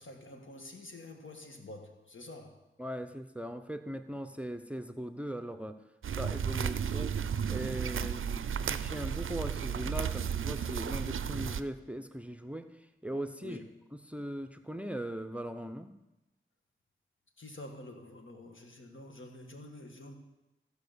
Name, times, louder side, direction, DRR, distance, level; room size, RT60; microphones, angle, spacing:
voice 1, 0.0-2.7 13.4-13.7 17.4-20.1, left 2 dB, 70° left, 3 dB, 1.6 m, -48 dB
voice 2, 2.8-5.8 6.2-7.1 7.5-12.7 13.0-13.6 14.1-15.9, equal, 5° right, 9 dB, 0.6 m, -39 dB
sound 1, 6.0-11.6, right 7 dB, 80° right, 0.4 m, -33 dB
14.5 x 5.0 x 6.9 m, 0.97 s
wide cardioid pair, 50°, 21 cm